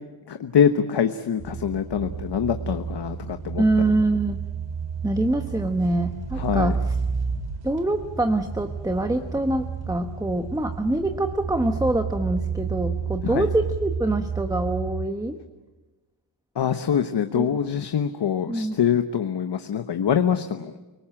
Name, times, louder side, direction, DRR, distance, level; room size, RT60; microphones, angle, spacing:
voice 1, 0.3-3.6 6.4-6.8 13.2-13.5 16.5-20.7, left 8 dB, 60° left, 8 dB, 1.2 m, -24 dB
sound 1, 1.4-15.1, right 6 dB, 65° right, 4.5 m, -31 dB
voice 2, 3.6-4.4 5.0-6.9 7.6-15.4 17.3-17.5 18.5-18.8, right 2 dB, 10° right, 7 dB, 1.1 m, -25 dB
29.5 x 19.5 x 8.9 m, 1.2 s
wide cardioid pair, 135°, 47 cm